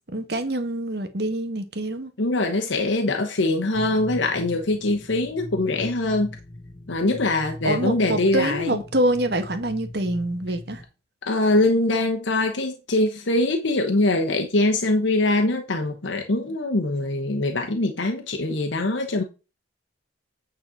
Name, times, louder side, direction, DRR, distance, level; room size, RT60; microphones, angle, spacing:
voice 1, 0.1-2.1 7.6-10.8, right 1 dB, 60° right, 1.3 m, -25 dB
voice 2, 2.2-6.3 6.9-8.7 11.2-19.2, left 2 dB, 80° left, 1.1 m, -23 dB
sound 1, 3.7-10.8, left 1 dB, 45° left, 5.1 m, -39 dB
9.2 x 4.1 x 5.0 m
head